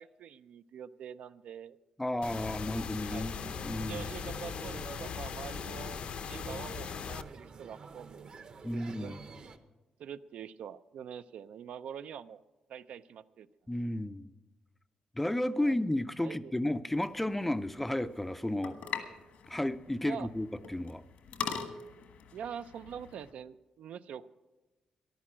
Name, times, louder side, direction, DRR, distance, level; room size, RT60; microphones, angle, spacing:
voice 1, 0.0-1.8 3.0-3.3 3.9-6.0 6.3-8.3 8.7-9.2 10.0-12.4 12.7-13.5 15.6-15.8 16.2-16.5 20.0-20.3 22.3-24.3, right 8 dB, 75° right, 13 dB, 0.4 m, -45 dB
voice 2, 2.0-4.1 8.6-9.2 13.7-14.3 15.2-18.8 19.5-21.0, left 1 dB, 5° left, 13 dB, 0.4 m, -33 dB
sound 1, 2.2-7.2, left 7 dB, 60° left, 0.6 m, -39 dB
sound 2, 3.4-9.6, right 4 dB, 40° right, 0.8 m, -49 dB
sound 3, 16.9-23.3, left 6 dB, 85° left, 1.5 m, -43 dB
14.0 x 11.5 x 6.1 m, 1.1 s
wide cardioid pair, 150°, 2 cm